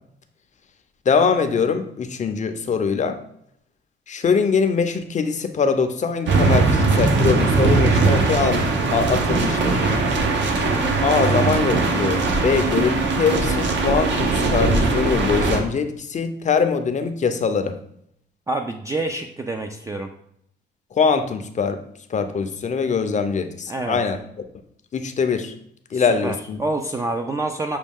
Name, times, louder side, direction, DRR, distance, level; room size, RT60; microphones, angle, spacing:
voice 1, 1.1-3.2 4.1-9.9 11.0-17.8 20.9-21.8 22.1-24.2 24.9-25.5 25.9-26.6, left 5 dB, 35° left, 8 dB, 0.5 m, -22 dB
sound 1, 6.3-15.6, right 3 dB, 65° right, 0.8 m, -20 dB
voice 2, 18.5-20.1 23.7-24.0 25.9-27.8, right 2 dB, 15° right, 4 dB, 0.3 m, -27 dB
6.2 x 2.2 x 3.5 m, 0.70 s
cardioid pair, 90°, 20 cm